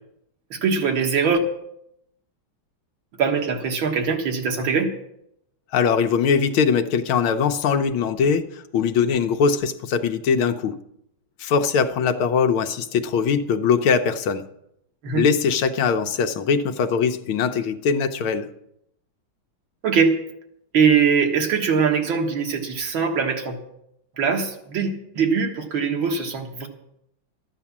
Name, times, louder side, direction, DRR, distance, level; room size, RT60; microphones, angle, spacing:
voice 1, 0.5-1.4 3.2-4.9 15.0-15.2 19.8-20.2 20.7-23.6 24.2-26.7, right 6 dB, 70° right, 3 dB, 2.4 m, -22 dB
voice 2, 5.7-10.8 11.4-14.4 15.2-18.5, left 6 dB, 85° left, 8 dB, 1.8 m, -21 dB
13.5 x 10.0 x 7.3 m, 0.78 s
omnidirectional pair, 2.2 m